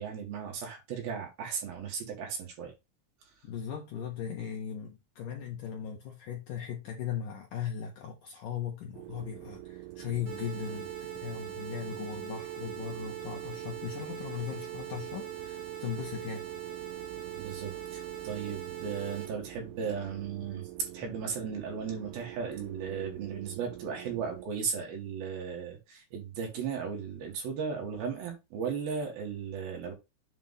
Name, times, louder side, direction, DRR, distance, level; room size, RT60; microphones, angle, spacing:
voice 1, 0.0-2.7 17.3-20.7 20.9-29.9, right 6 dB, 60° right, 3.3 m, -36 dB
voice 2, 3.4-11.0 11.2-16.5, left 8 dB, 80° left, 1.8 m, -38 dB
sound 1, 8.9-24.5, right 15 dB, 80° right, 2.7 m, -46 dB
sound 2, 10.3-19.3, right 10 dB, 45° right, 1.7 m, -41 dB
8.1 x 3.0 x 5.6 m
omnidirectional pair, 5.4 m